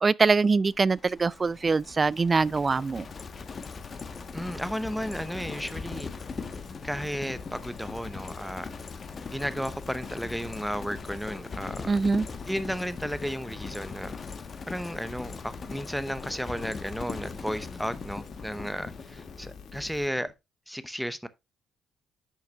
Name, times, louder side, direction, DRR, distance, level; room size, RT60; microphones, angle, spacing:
voice 1, 0.0-3.1 11.9-12.3, right 4 dB, 30° right, 0.3 m, -23 dB
Livestock farm animals working animals, 0.7-20.3, left 4 dB, 40° left, 1.1 m, -40 dB
sound 1, 2.3-20.1, left 6 dB, 80° left, 1.5 m, -50 dB
voice 2, 4.3-6.1 6.8-8.7 9.3-11.8 12.5-14.1 14.7-20.3 20.7-21.3, equal, ahead, 0.8 m, -33 dB
10.5 x 5.7 x 2.3 m
cardioid pair, 90°, 0 cm